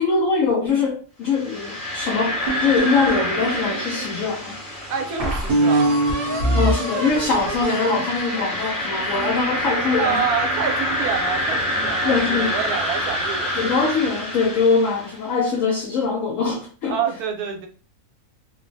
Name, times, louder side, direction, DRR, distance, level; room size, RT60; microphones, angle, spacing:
voice 1, 0.0-4.6 6.5-10.2 12.0-12.5 13.6-17.0, left 4 dB, 65° left, 0.9 m, -22 dB
sound 1, 1.3-15.3, left 1 dB, 35° left, 1.3 m, -27 dB
sound 2, 2.5-4.0 4.6-4.7 5.2-9.4, right 1 dB, 55° right, 0.6 m, -24 dB
voice 2, 4.9-6.0 10.0-13.6 16.9-17.7, right 7 dB, 80° right, 1.1 m, -27 dB
sound 3, 5.5-12.0, left 2 dB, 85° left, 1.4 m, -39 dB
3.0 x 2.1 x 2.5 m
omnidirectional pair, 1.6 m